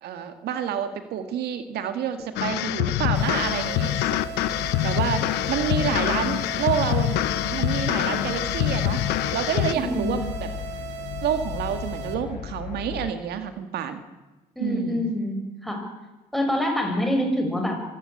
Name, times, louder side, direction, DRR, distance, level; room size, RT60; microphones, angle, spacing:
voice 1, 0.0-4.0 4.3-4.5 4.8-9.0 9.3-10.5 11.2-14.0 14.6-15.1, right 8 dB, 75° right, 9 dB, 2.0 m, -29 dB
sound 1, 2.4-9.7, left 15 dB, 90° left, 0.8 m, -25 dB
sound 2, 2.9-13.1, left 10 dB, 55° left, 1.2 m, -36 dB
sound 3, 3.1-12.1, right 8 dB, 90° right, 2.7 m, -38 dB
voice 2, 9.7-10.2 14.6-15.9 16.3-17.8, left 1 dB, ahead, 2 dB, 5.8 m, -26 dB
25.0 x 16.0 x 8.6 m, 1.1 s
cardioid pair, 110°, 17 cm